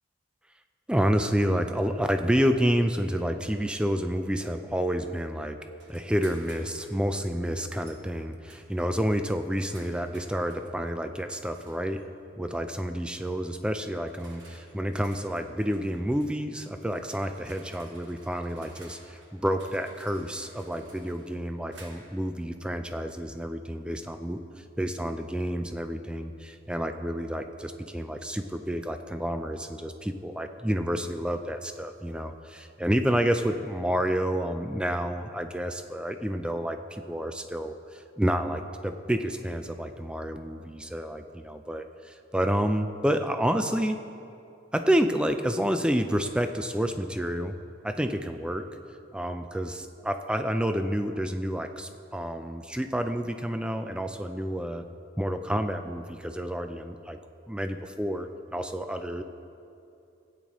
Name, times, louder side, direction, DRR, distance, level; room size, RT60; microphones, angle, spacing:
voice 1, 0.9-5.6 5.9-12.0 12.4-44.0 44.7-47.6 47.8-48.7 49.1-54.9 55.2-57.2 57.5-59.2, equal, 5° right, 7 dB, 0.4 m, -29 dB
sound 1, 5.8-7.0 7.8-8.0 8.5-10.7 11.5-12.0 13.1-13.3 13.9-22.2, right 2 dB, 65° right, 1.5 m, -55 dB
16.0 x 8.6 x 3.1 m, 2.6 s
head